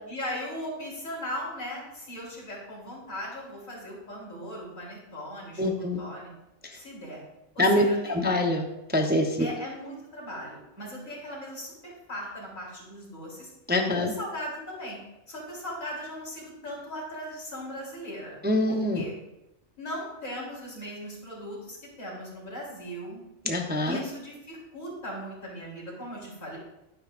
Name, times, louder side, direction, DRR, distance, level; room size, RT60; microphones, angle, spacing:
voice 1, 0.1-5.7 6.0-6.3 6.7-7.2 7.6-8.3 9.4-13.5 14.0-15.0 15.3-18.4 18.7-19.1 19.8-23.2 23.8-26.6, equal, 90° left, -5 dB, 3.9 m, -38 dB
voice 2, 5.6-6.0 7.6-8.7 8.9-9.5 13.7-14.1 18.4-19.0 23.5-24.0, left 1 dB, 10° right, 3 dB, 0.6 m, -24 dB
11.5 x 10.0 x 2.5 m, 0.93 s
omnidirectional pair, 1.4 m